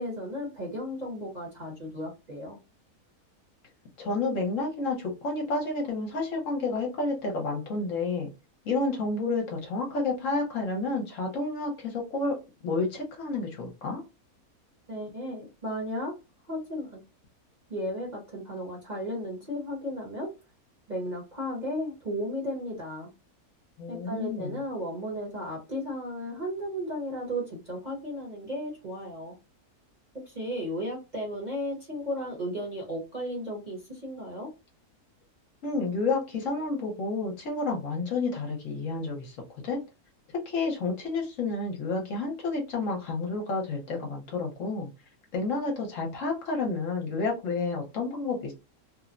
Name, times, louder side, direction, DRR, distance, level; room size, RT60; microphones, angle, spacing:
voice 1, 0.0-2.6 14.9-16.1 16.5-17.0 17.7-20.3 20.9-23.1 23.9-29.4 30.3-34.5, equal, 35° right, -3 dB, 0.9 m, -34 dB
voice 2, 4.0-8.3 8.6-12.4 12.6-14.0 23.8-24.6 35.6-39.4 39.6-39.8 40.5-44.9 45.3-48.5, left 3 dB, 65° left, 0 dB, 1.1 m, -30 dB
3.0 x 2.0 x 2.4 m, 0.27 s
omnidirectional pair, 1.5 m